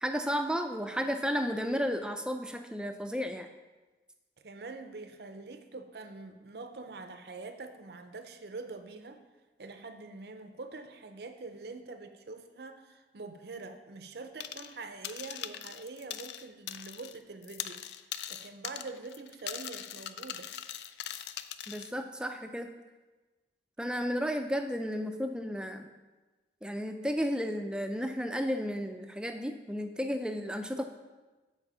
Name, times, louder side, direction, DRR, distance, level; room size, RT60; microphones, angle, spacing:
voice 1, 0.0-3.5 21.7-22.7 23.8-25.9 26.6-30.9, equal, 5° right, 6 dB, 0.4 m, -33 dB
voice 2, 4.4-9.2 9.6-17.8 18.3-20.5, right 3 dB, 65° right, 8 dB, 0.6 m, -45 dB
sound 1, 14.4-14.8 15.0-17.2 17.4-21.9, left 11 dB, 75° left, 0.4 m, -41 dB
8.3 x 4.6 x 5.4 m, 1.2 s
head